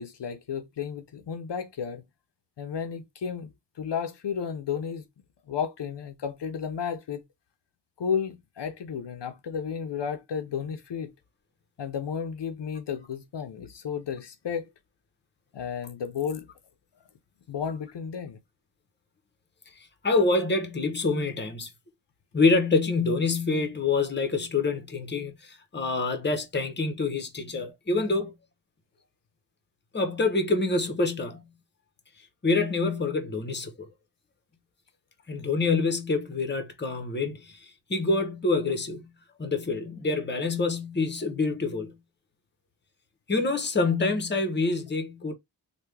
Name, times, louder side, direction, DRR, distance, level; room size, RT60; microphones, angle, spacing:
voice 1, 0.0-2.0 2.6-3.5 3.8-5.0 5.5-7.2 8.0-11.1 11.8-14.7 15.5-16.5 17.5-18.4, left 7 dB, 70° left, 0.7 m, -33 dB
voice 2, 20.0-21.7 22.3-28.3 29.9-31.4 32.4-33.9 35.3-39.1 39.4-41.9 43.3-45.3, left 3 dB, 25° left, 0.8 m, -26 dB
3.3 x 2.3 x 3.2 m
wide cardioid pair, 70°, 44 cm